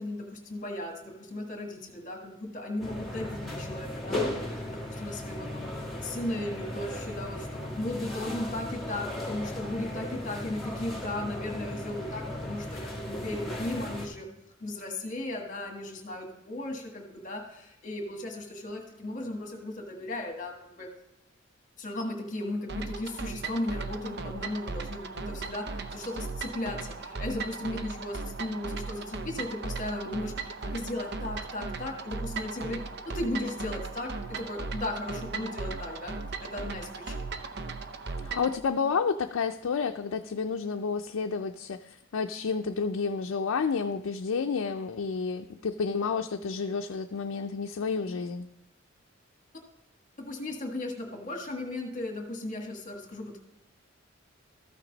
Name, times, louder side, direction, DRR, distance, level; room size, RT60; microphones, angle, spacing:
voice 1, 0.0-14.3 14.6-20.9 21.8-37.2 50.2-53.4, left 1 dB, 40° left, 2 dB, 1.5 m, -36 dB
sound 1, 2.8-14.1, left 1 dB, ahead, 1.6 m, -36 dB
sound 2, 22.7-38.6, right 4 dB, 55° right, 0.6 m, -37 dB
voice 2, 38.2-48.4, left 5 dB, 90° left, 4 dB, 0.4 m, -30 dB
13.5 x 6.0 x 3.9 m, 0.88 s
head